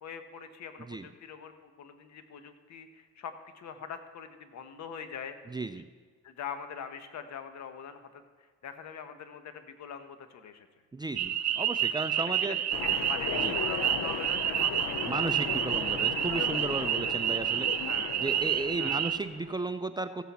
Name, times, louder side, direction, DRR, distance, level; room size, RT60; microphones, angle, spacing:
voice 1, 0.0-5.6 6.2-8.2 8.6-10.7 12.2-16.0 17.8-18.2 18.8-19.0, left 7 dB, 65° left, 8 dB, 1.1 m, -43 dB
voice 2, 5.5-5.8 10.9-12.6 13.4-13.6 15.1-17.9 18.2-20.2, right 3 dB, 15° right, 10 dB, 0.4 m, -35 dB
sound 1, 11.2-19.2, right 10 dB, 60° right, 0.6 m, -29 dB
Train, 12.7-19.6, left 9 dB, 85° left, 0.6 m, -37 dB
15.0 x 8.1 x 4.2 m, 1.5 s
cardioid pair, 90°, 30 cm